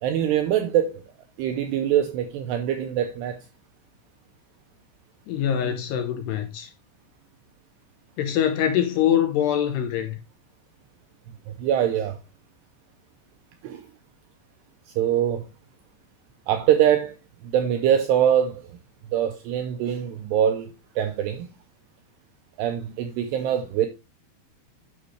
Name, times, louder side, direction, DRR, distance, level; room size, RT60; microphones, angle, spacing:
voice 1, 0.0-1.0 1.4-3.4 11.5-12.2 13.6-13.8 15.0-15.5 16.5-17.1 17.4-18.8 19.1-20.7 21.0-21.5 22.6-23.9, right 10 dB, 90° right, 2.4 m, -23 dB
voice 2, 5.3-6.7 8.2-10.2, left 10 dB, 80° left, 2.6 m, -24 dB
9.4 x 6.0 x 3.2 m
omnidirectional pair, 5.6 m